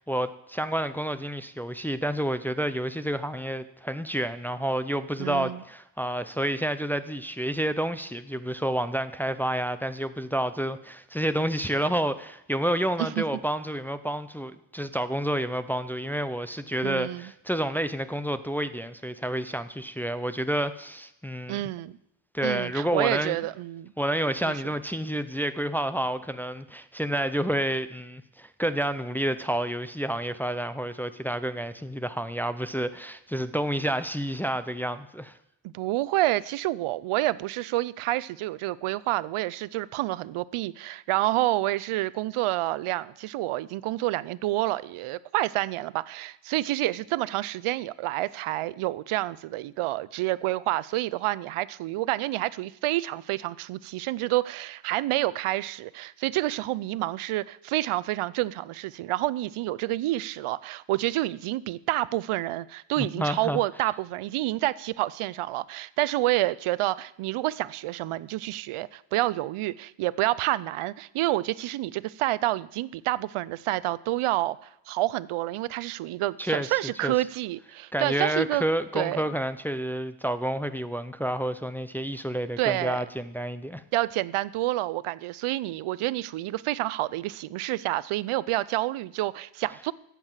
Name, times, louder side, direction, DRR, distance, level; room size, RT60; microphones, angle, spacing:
voice 1, 0.0-21.6 22.3-23.4 24.0-35.4 63.0-63.6 76.4-76.7 77.0-77.1 77.9-83.8, right 1 dB, 5° left, 10 dB, 0.6 m, -29 dB
voice 2, 5.2-5.6 13.0-13.3 16.8-17.3 21.5-22.0 22.4-23.9 24.4-24.5 35.6-78.6 78.9-79.2 82.6-83.0 83.9-89.9, right 16 dB, 85° right, 19 dB, 0.7 m, -28 dB
14.0 x 8.4 x 7.3 m, 0.79 s
cardioid pair, 125°, 49 cm